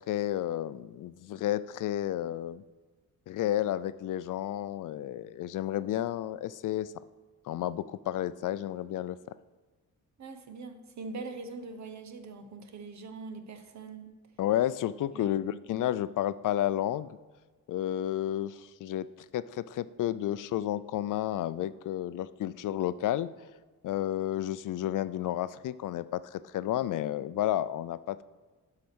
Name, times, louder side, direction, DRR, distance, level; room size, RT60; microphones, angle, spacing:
voice 1, 0.1-2.6 3.3-6.9 7.4-9.2 14.4-17.2 17.7-19.1 19.3-23.3 23.8-28.2, left 12 dB, 70° left, 16 dB, 0.5 m, -31 dB
voice 2, 10.2-14.0 15.1-15.6, right 3 dB, 55° right, 8 dB, 1.1 m, -42 dB
11.5 x 4.9 x 6.1 m, 1.3 s
cardioid pair, 125°, 32 cm